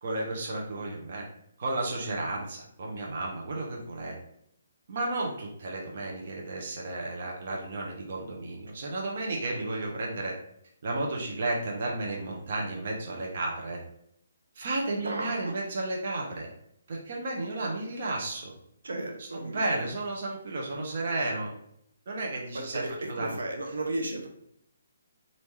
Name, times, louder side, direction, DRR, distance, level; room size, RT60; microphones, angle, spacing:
voice 1, 0.0-1.3 1.6-4.1 4.9-10.3 10.8-13.8 14.6-16.5 16.9-18.5 19.2-21.5 22.1-22.8 23.1-23.4, right 2 dB, 50° right, -1 dB, 0.8 m, -33 dB
voice 2, 15.0-15.5 18.8-19.9 22.5-24.3, right 2 dB, 80° right, 3 dB, 0.8 m, -34 dB
3.5 x 2.6 x 3.1 m, 0.72 s
hypercardioid pair, 155°, 0 cm